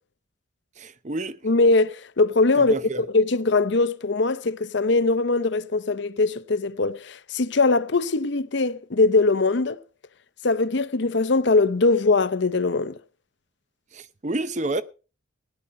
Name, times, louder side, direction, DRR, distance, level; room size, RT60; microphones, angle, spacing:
voice 1, 0.8-1.4 2.6-3.0 13.9-14.8, right 2 dB, 35° right, 0.7 m, -29 dB
voice 2, 1.4-2.8 3.1-9.8 10.4-13.0, left 3 dB, 55° left, 0.7 m, -21 dB
16.5 x 10.0 x 5.2 m
head